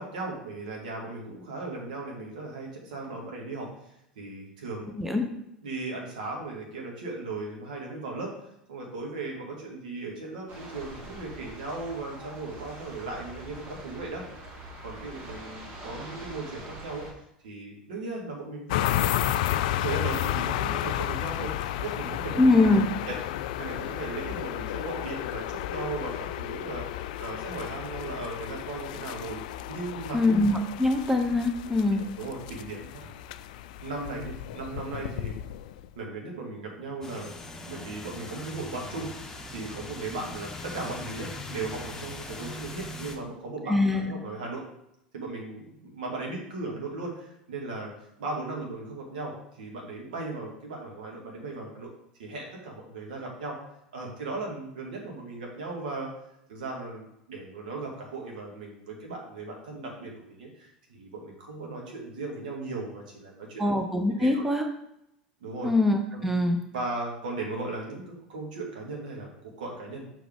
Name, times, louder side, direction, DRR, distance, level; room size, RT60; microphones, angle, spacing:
voice 1, 0.0-3.7 4.2-4.9 5.6-8.3 8.7-14.2 14.8-17.1 17.4-19.3 19.7-22.4 23.1-26.9 27.2-29.4 29.7-30.2 31.6-33.1 33.8-35.4 36.0-37.3 37.7-43.7 44.0-44.6 45.1-47.9 48.2-51.9 52.2-53.6 53.9-56.1 56.5-63.7 64.2-64.4 65.4-65.7 66.1-66.4 66.7-70.1, right 3 dB, 65° right, -1 dB, 2.1 m, -37 dB
sound 1, 10.5-17.1, right 1 dB, 40° right, 2.4 m, -44 dB
sound 2, 18.7-35.9, left 12 dB, 55° left, 0.3 m, -32 dB
voice 2, 22.4-22.9 30.1-32.0 43.7-44.1 63.6-64.7 65.6-66.6, left 2 dB, 5° right, 4 dB, 0.8 m, -23 dB
sound 3, 37.0-43.2, left 1 dB, 10° left, 1.3 m, -40 dB
7.1 x 5.8 x 3.6 m, 0.81 s
figure-of-eight pair, 80°, 5 cm